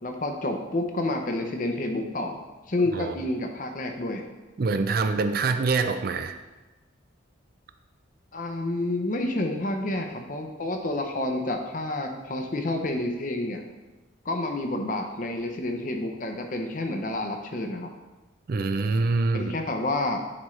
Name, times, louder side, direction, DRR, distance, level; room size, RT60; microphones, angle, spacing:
voice 1, 0.0-2.4 2.7-4.2 8.3-13.6 14.2-17.9 19.3-20.2, left 2 dB, 45° left, 4 dB, 0.7 m, -29 dB
voice 2, 2.8-3.1 4.6-6.4 18.5-19.5, right 3 dB, 50° right, 9 dB, 0.4 m, -25 dB
9.8 x 4.4 x 3.2 m, 1.1 s
head